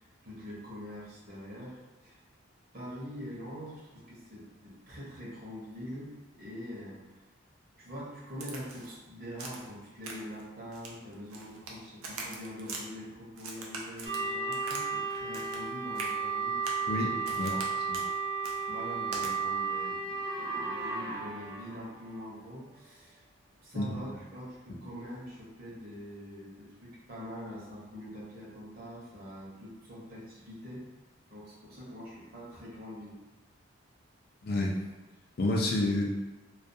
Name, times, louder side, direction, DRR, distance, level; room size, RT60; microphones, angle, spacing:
voice 1, 0.0-2.2 2.7-7.2 7.8-16.8 17.3-18.1 18.7-23.2 23.6-30.8 31.3-33.2, equal, 45° right, -6 dB, 0.7 m, -44 dB
Crack, 8.4-8.9 9.4-9.7 10.0-10.4 10.7-11.7 12.0-12.8 13.4-14.8 15.1-15.7 15.9-16.1 16.6-16.8 17.2-17.7 17.9-18.1 18.4-18.6 19.1-19.3, right 3 dB, 80° right, 0.4 m, -42 dB
sound 1, 14.0-22.1, right 5 dB, 15° right, 0.4 m, -33 dB
voice 2, 16.9-17.5 17.9-18.0 23.8-23.9 34.4-34.8 35.4-36.1, left 2 dB, 45° left, -1 dB, 0.4 m, -29 dB
2.3 x 2.2 x 2.6 m, 1.1 s
head